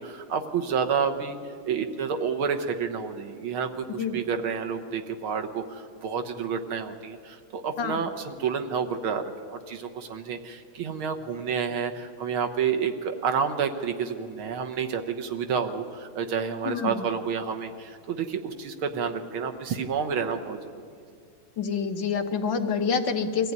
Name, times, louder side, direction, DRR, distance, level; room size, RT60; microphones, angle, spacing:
voice 1, 0.0-1.4 1.6-20.6, right 6 dB, 75° right, 5 dB, 2.0 m, -29 dB
voice 2, 16.6-17.0 21.6-23.5, left 6 dB, 60° left, 5 dB, 1.7 m, -27 dB
23.0 x 15.5 x 9.6 m, 2.3 s
omnidirectional pair, 2.4 m